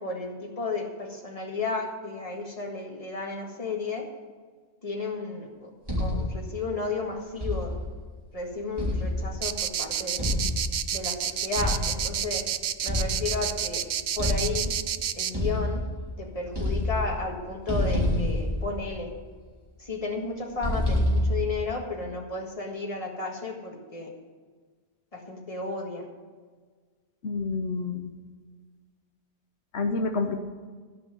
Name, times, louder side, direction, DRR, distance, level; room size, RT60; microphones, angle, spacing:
voice 1, 0.0-4.1 4.8-5.7 6.0-7.7 8.3-10.2 10.9-12.4 12.8-13.8 14.2-14.7 15.2-15.8 16.2-19.1 19.8-24.1 25.1-26.0, left 3 dB, 35° left, 0 dB, 1.9 m, -33 dB
sound 1, 5.9-6.5 7.4-8.0 8.8-9.6 10.2-11.0 11.6-12.2 12.9-13.6 14.2-14.9 15.3-16.2 16.5-17.3 17.7-19.2 20.6-21.6, left 1 dB, 20° right, 3.2 m, -28 dB
sound 2, 9.4-15.3, right 9 dB, 55° right, 0.5 m, -29 dB
voice 2, 27.2-28.1 29.7-30.4, left 3 dB, 80° left, 5 dB, 1.1 m, -28 dB
13.5 x 5.6 x 9.2 m, 1.5 s
omnidirectional pair, 1.1 m